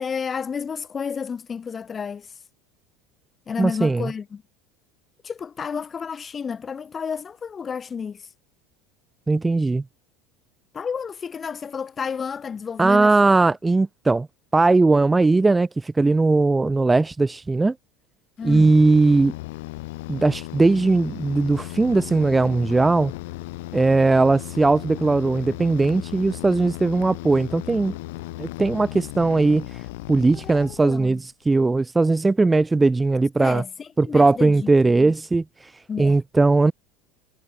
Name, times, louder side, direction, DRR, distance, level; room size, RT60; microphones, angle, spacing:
voice 1, 0.0-2.3 3.5-4.4 5.2-8.3 10.7-13.1 18.4-18.7 30.3-31.2 33.4-35.1 35.9-36.2, left 6 dB, 20° left, 2.0 m, -31 dB
voice 2, 3.6-4.1 9.3-9.8 12.8-14.3 14.5-17.7 18.4-19.3 20.1-23.1 23.7-28.0 28.4-29.8 30.1-31.2 31.5-33.6 34.0-35.7 36.0-36.7, right 3 dB, 10° right, 0.6 m, -19 dB
sound 1, 18.4-31.3, left 21 dB, 85° left, 5.3 m, -36 dB
supercardioid pair, 150°, 0 cm